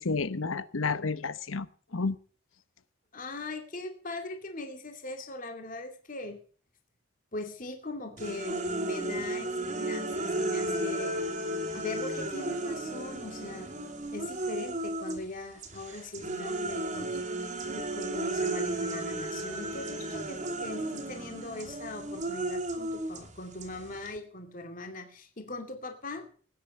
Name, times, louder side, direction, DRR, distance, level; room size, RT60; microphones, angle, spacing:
voice 1, 0.0-2.2, left 4 dB, 90° left, 15 dB, 1.0 m, -31 dB
voice 2, 3.1-6.4 7.3-11.2 11.8-13.7 14.1-17.2 17.7-26.2, left 2 dB, 40° left, 4 dB, 2.5 m, -40 dB
sound 1, 8.2-15.3 15.6-24.2, right 1 dB, 40° right, 2.8 m, -34 dB
19.5 x 9.7 x 5.6 m, 0.44 s
head